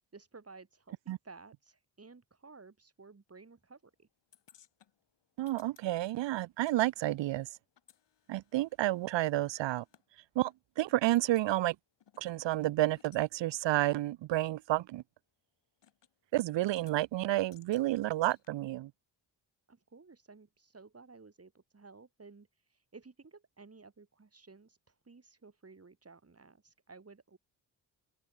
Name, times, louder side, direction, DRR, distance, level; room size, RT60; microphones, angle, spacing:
voice 1, 0.1-4.1 19.7-27.4, right 4 dB, 30° right, 6.9 m, -55 dB
sound 1, 4.3-6.8 7.0-10.1 10.5-10.6 10.9-11.5 12.0-13.3 13.5-13.7 14.4-14.5 15.8-16.1 16.4-17.0 17.5-18.5, left 9 dB, 65° left, 6.9 m, -64 dB
voice 2, 5.4-7.5 8.3-9.8 10.3-11.8 12.2-15.0 16.3-18.9, right 15 dB, 70° right, 0.9 m, -30 dB
open air
supercardioid pair, 55°, 45 cm